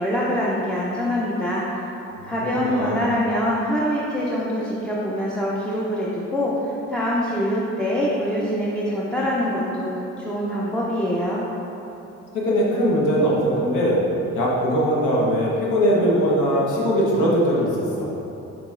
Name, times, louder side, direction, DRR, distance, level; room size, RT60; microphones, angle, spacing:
voice 1, 0.0-1.6 2.3-9.9 10.2-11.4, equal, 5° left, -6 dB, 0.5 m, -24 dB
voice 2, 2.2-3.0 12.3-14.0 14.3-18.1, equal, 85° left, -4 dB, 1.0 m, -21 dB
6.9 x 3.0 x 2.4 m, 3.0 s
cardioid pair, 90°, 30 cm